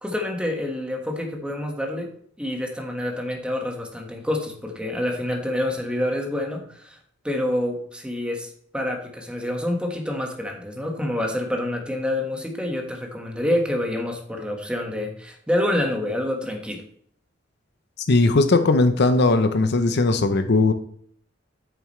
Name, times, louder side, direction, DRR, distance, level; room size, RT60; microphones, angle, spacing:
voice 1, 0.0-2.1 2.4-7.0 7.2-16.8, left 1 dB, 5° right, 2 dB, 1.4 m, -27 dB
voice 2, 18.1-20.7, left 3 dB, 60° left, 9 dB, 0.7 m, -18 dB
8.5 x 6.9 x 3.1 m, 0.63 s
head